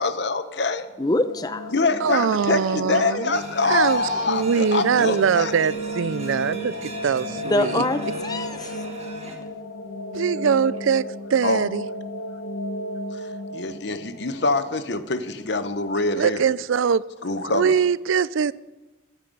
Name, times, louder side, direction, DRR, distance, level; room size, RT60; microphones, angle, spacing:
voice 1, 0.0-0.9 1.7-5.5 11.4-11.6 13.1-16.4 17.2-17.7, left 3 dB, 60° left, 0.9 m, -25 dB
sound 1, 0.9-15.8, left 1 dB, 90° left, 1.1 m, -34 dB
voice 2, 1.0-1.7 7.5-8.7, left 2 dB, 20° left, 0.7 m, -24 dB
voice 3, 2.0-7.8 10.1-11.0 11.3-11.8 16.1-17.0 17.5-18.5, right 6 dB, 85° right, 0.4 m, -22 dB
sound 2, 3.3-9.4, right 2 dB, 35° right, 1.9 m, -39 dB
14.5 x 12.5 x 5.4 m
head